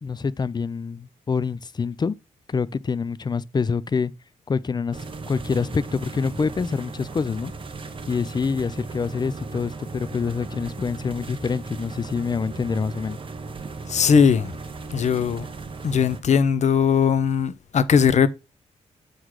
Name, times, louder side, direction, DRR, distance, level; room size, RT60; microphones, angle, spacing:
voice 1, 0.0-2.2 2.5-4.1 4.5-5.0 5.3-7.5 8.1-13.2, left 5 dB, 30° left, 0.5 m, -26 dB
sound 1, 4.9-16.2, right 4 dB, 40° right, 1.2 m, -37 dB
voice 2, 13.9-14.5 14.9-15.4 15.8-18.3, left 6 dB, 60° left, 0.8 m, -19 dB
7.9 x 3.9 x 4.7 m
cardioid pair, 80°, 13 cm